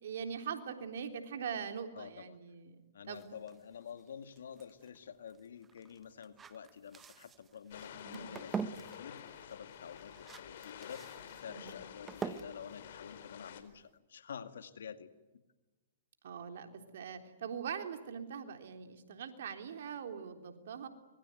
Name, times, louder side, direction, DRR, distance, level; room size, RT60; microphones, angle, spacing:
voice 1, 0.0-2.8 3.1-3.2 8.0-8.3 11.5-11.8 16.2-20.9, right 7 dB, 70° right, 6 dB, 3.6 m, -42 dB
voice 2, 1.9-2.4 2.9-11.1 11.4-15.1, left 7 dB, 80° left, 11 dB, 2.1 m, -49 dB
sound 1, 3.1-13.9, right 6 dB, 15° right, 1.5 m, -46 dB
sound 2, 7.7-13.6, left 9 dB, 60° left, 4.1 m, -50 dB
25.0 x 22.5 x 9.4 m, 1.1 s
hypercardioid pair, 130°, 0 cm